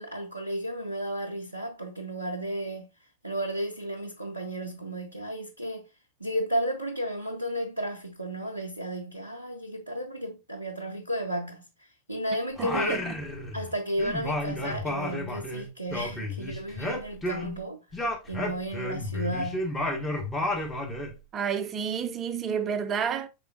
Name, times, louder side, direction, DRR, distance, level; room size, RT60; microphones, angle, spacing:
voice 1, 0.0-2.9 3.2-5.9 6.2-13.1 13.5-17.8 18.3-19.7, right 1 dB, 85° right, 0.4 m, -33 dB
voice 2, 12.3-13.1 21.3-23.3, right 7 dB, 25° right, 0.4 m, -30 dB
Singing, 12.6-13.7 14.0-17.6 17.9-21.1, left 1 dB, 10° left, 0.9 m, -32 dB
5.0 x 3.5 x 2.3 m
figure-of-eight pair, 90°, 0 cm